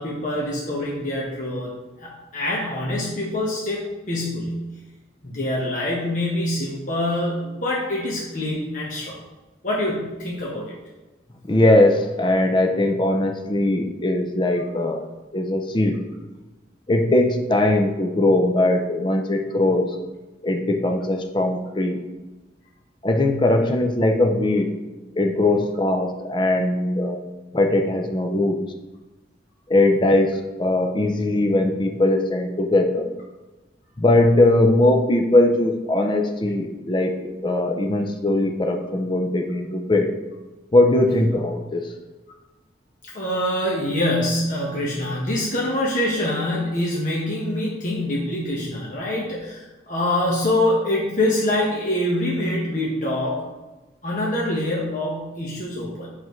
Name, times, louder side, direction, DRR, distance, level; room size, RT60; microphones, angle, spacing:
voice 1, 0.0-1.7 2.0-4.6 5.2-9.2 9.6-10.7 43.0-53.4 54.0-56.1, left 1 dB, 45° left, -4 dB, 1.2 m, -25 dB
voice 2, 11.4-16.0 16.9-19.9 20.4-22.0 23.0-24.8 25.2-27.2 27.5-28.6 29.7-33.1 34.0-40.1 40.7-41.9, left 1 dB, 25° left, 4 dB, 0.6 m, -20 dB
7.6 x 6.2 x 3.1 m, 1.2 s
head